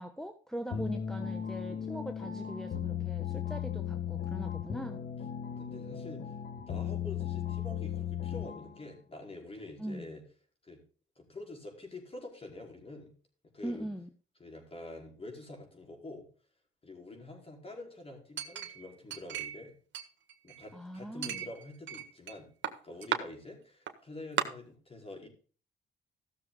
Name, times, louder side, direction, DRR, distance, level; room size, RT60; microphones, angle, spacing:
voice 1, 0.0-5.0 9.8-10.2 13.6-14.1 20.7-21.4, right 1 dB, ahead, 6 dB, 1.2 m, -41 dB
sound 1, 0.7-8.8, left 9 dB, 55° left, 1.4 m, -36 dB
voice 2, 5.5-6.3 6.6-10.2 10.6-10.8 11.1-13.1 13.5-13.9 14.4-16.2 16.8-19.7 20.4-22.5 22.8-25.3, left 2 dB, 30° left, 1 dB, 5.0 m, -47 dB
Chink clink, 18.4-19.6 19.9-20.7 21.2-22.3 22.6-23.2 23.9-24.0 24.4-24.5, right 10 dB, 65° right, 1.6 m, -35 dB
15.0 x 6.8 x 3.9 m, 0.40 s
cardioid pair, 90°, 20 cm